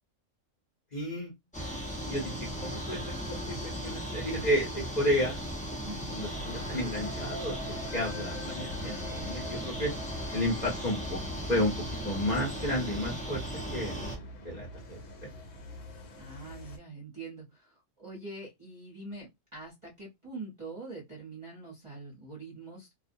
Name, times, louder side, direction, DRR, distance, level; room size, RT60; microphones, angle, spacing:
voice 1, 0.9-1.3 2.1-5.4 6.1-9.9 10.3-11.2 11.5-11.8 12.0-13.4 13.7-15.0, left 1 dB, 40° left, 0.8 m, -32 dB
sound 1, 1.5-14.2, equal, 10° left, 0.3 m, -37 dB
voice 2, 5.9-6.2 16.2-22.9, right 3 dB, 25° right, 0.8 m, -44 dB
sound 2, 6.2-16.8, equal, 70° left, 1.0 m, -45 dB
2.4 x 2.1 x 2.6 m
omnidirectional pair, 1.4 m